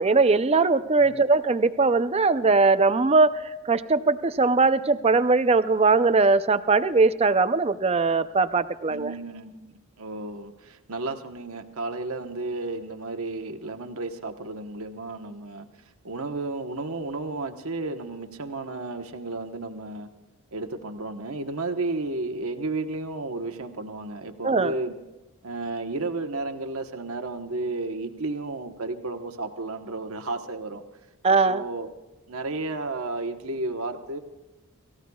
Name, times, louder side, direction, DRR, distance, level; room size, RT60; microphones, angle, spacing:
voice 1, 0.0-9.1 24.4-24.7 31.2-31.6, right 3 dB, 25° right, 12 dB, 0.5 m, -20 dB
voice 2, 8.9-15.7 16.0-20.1 20.5-24.9 25.4-30.8 31.3-31.9 32.3-34.2, right 2 dB, 70° right, 6 dB, 1.1 m, -33 dB
27.5 x 15.5 x 2.3 m, 1.1 s
head